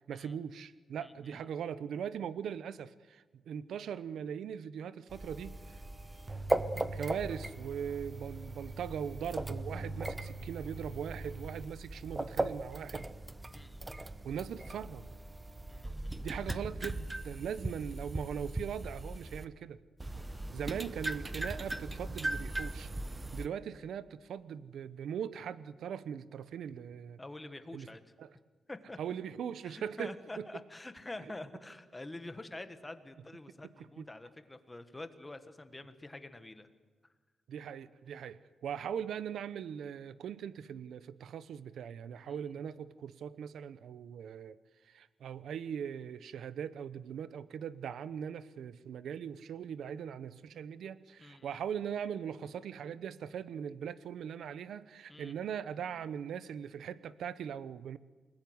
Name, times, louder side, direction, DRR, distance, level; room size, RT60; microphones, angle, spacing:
voice 1, 0.1-5.8 6.9-13.1 14.2-15.1 16.2-19.8 20.5-22.9 23.3-27.2 27.7-27.9 28.2-28.3 29.0-30.5 33.6-34.0 37.5-44.6 44.8-58.0, right 8 dB, 70° right, 15 dB, 0.9 m, -40 dB
voice 2, 1.0-1.4 13.5-13.9 15.7-16.3 20.1-20.5 27.2-28.0 28.7-29.0 29.6-36.7 42.2-42.6 51.2-51.6 55.1-55.3, left 2 dB, 10° left, 9 dB, 1.5 m, -47 dB
sound 1, 5.1-19.4 20.0-23.5, right 2 dB, 10° right, 0.9 m, -39 dB
28.5 x 20.0 x 9.6 m, 1.4 s
wide cardioid pair, 175°, 0 cm